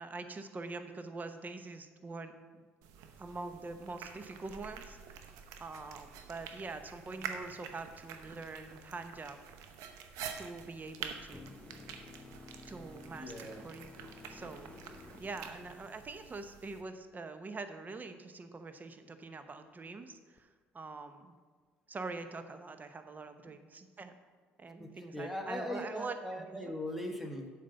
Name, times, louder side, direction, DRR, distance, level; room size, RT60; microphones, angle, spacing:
voice 1, 0.0-2.7 3.2-5.3 5.6-9.4 10.4-11.5 12.7-14.0 14.3-14.7 15.2-20.5 20.7-21.3 21.9-24.1 24.6-26.6, right 3 dB, 30° right, 9 dB, 0.9 m, -44 dB
sound 1, 2.8-16.8, right 7 dB, 75° right, 0.8 m, -48 dB
sound 2, 11.3-16.4 20.4-20.5, left 3 dB, 20° left, 0.7 m, -53 dB
voice 2, 13.1-13.7 24.8-27.5, left 1 dB, ahead, 2 dB, 1.4 m, -40 dB
7.4 x 5.1 x 6.9 m, 1.5 s
hypercardioid pair, 60°, 6 cm